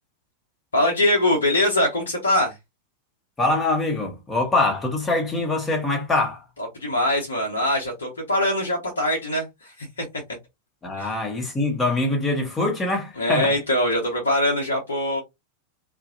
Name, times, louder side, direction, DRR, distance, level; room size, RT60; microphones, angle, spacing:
voice 1, 0.7-2.6 6.7-10.2 11.0-11.1 13.2-15.2, left 1 dB, 70° left, 0.8 m, -23 dB
voice 2, 3.4-6.4 10.8-13.5, left 2 dB, 15° left, 1.0 m, -24 dB
2.5 x 2.1 x 2.6 m
figure-of-eight pair, 90°, 0 cm